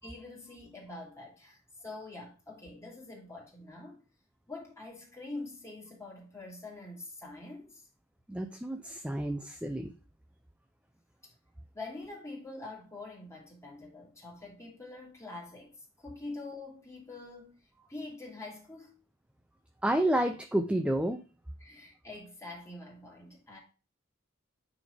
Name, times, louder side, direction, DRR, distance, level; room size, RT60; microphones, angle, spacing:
voice 1, 0.0-4.0 4.5-7.9 11.7-17.6 17.9-19.0 21.6-23.6, left 2 dB, 15° left, 3.0 m, -45 dB
voice 2, 8.3-9.9 19.8-21.2, right 1 dB, 5° right, 0.4 m, -30 dB
9.2 x 4.2 x 3.3 m
head